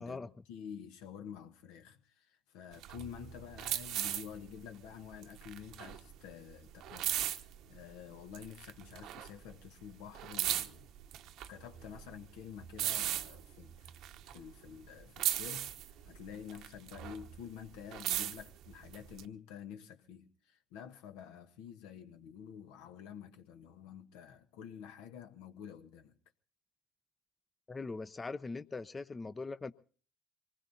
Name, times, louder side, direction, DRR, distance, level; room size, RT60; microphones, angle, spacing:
voice 1, 0.0-10.9 11.5-14.0 14.3-15.7 16.0-26.2, left 8 dB, 70° left, 1.3 m, -49 dB
sound 1, 2.7-8.0 8.3-9.7 9.9-14.9 15.2-17.4 17.7-19.2, right 12 dB, 65° right, 0.9 m, -38 dB
voice 2, 27.7-29.7, left 3 dB, 25° left, 0.7 m, -41 dB
25.5 x 20.0 x 2.8 m
hypercardioid pair, 60°, 0 cm